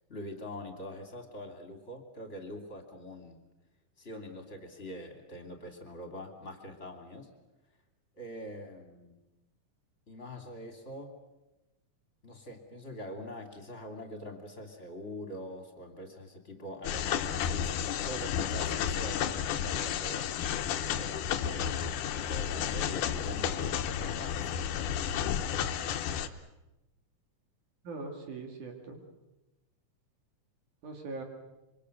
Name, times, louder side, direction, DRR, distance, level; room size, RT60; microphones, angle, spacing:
voice 1, 0.1-3.4 4.0-7.3 8.2-9.2 10.1-11.2 12.2-20.3 21.0-21.9 22.1-24.6, left 1 dB, 25° left, 4 dB, 2.6 m, -44 dB
sound 1, 16.8-26.3, left 9 dB, 90° left, 2.5 m, -32 dB
voice 2, 27.8-29.0 30.8-31.2, right 3 dB, 75° right, 3 dB, 3.9 m, -41 dB
27.0 x 24.0 x 6.6 m, 1.0 s
omnidirectional pair, 3.5 m